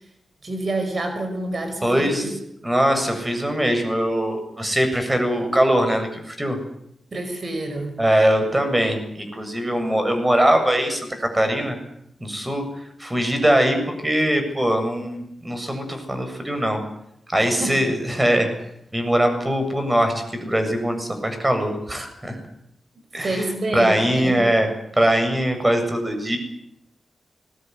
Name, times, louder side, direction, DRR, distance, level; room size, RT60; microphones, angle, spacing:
voice 1, 0.4-2.3 7.1-8.0 17.4-17.8 23.2-24.5, right 2 dB, 50° right, 6 dB, 5.3 m, -28 dB
voice 2, 1.8-2.4 2.6-6.6 8.0-11.8 12.2-13.8 14.0-16.8 17.3-18.5 18.9-22.4 23.1-24.7 25.0-26.4, right 1 dB, 15° right, 6 dB, 7.8 m, -21 dB
22.5 x 19.0 x 9.8 m, 0.77 s
cardioid pair, 70°, 0 cm